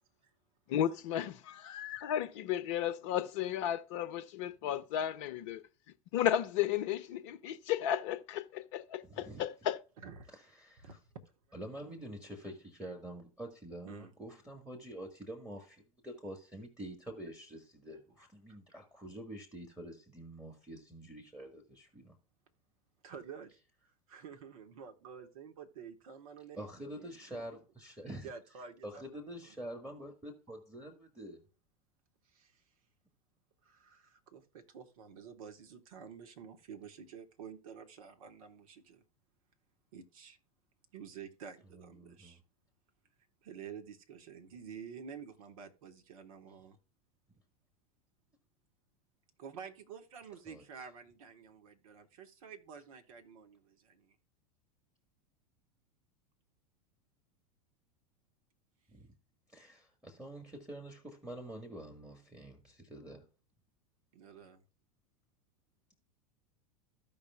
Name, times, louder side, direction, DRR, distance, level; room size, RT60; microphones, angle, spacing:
voice 1, 0.7-5.6 6.1-9.8, left 10 dB, 50° left, 0.8 m, -34 dB
voice 2, 9.0-9.4 11.5-22.1 26.6-28.3 28.8-31.4 41.7-42.4 50.5-50.6 58.9-59.1 59.5-63.2, right 1 dB, 5° right, 1.7 m, -47 dB
voice 3, 10.0-10.3 13.8-14.1 18.5-18.6 23.0-23.6 24.1-27.0 28.2-29.6 32.3-32.6 33.6-39.0 39.9-40.4 40.9-42.4 43.4-46.8 49.4-54.2 64.1-64.6, right 7 dB, 60° right, 1.6 m, -50 dB
15.0 x 5.4 x 2.4 m
figure-of-eight pair, 90°, 20 cm